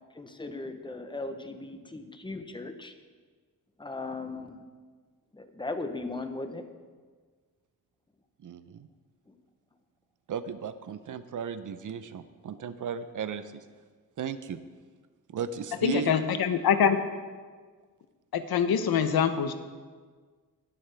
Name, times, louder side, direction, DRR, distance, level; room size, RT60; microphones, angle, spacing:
voice 1, 0.1-2.9 3.8-4.6 5.3-6.6 9.3-9.4, left 2 dB, 15° left, 7 dB, 0.9 m, -37 dB
voice 2, 8.4-8.9 10.3-13.6 14.2-14.6 15.3-16.1, right 7 dB, 60° right, 12 dB, 0.6 m, -35 dB
voice 3, 15.8-17.0 18.3-19.5, left 7 dB, 85° left, 10 dB, 0.8 m, -24 dB
20.0 x 7.1 x 3.4 m, 1.5 s
wide cardioid pair, 105°, 36 cm